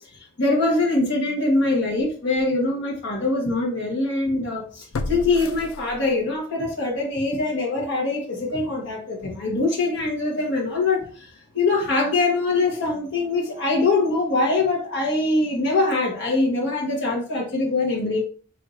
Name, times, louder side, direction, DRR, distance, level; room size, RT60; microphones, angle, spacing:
voice 1, 0.4-11.3 11.5-18.2, left 2 dB, 55° left, -3 dB, 1.3 m, -23 dB
sound 1, 1.6-1.8 2.4-2.5 4.9-6.4 6.8-6.9, left 3 dB, 80° left, 0.5 m, -32 dB
4.6 x 3.5 x 2.6 m, 0.39 s
head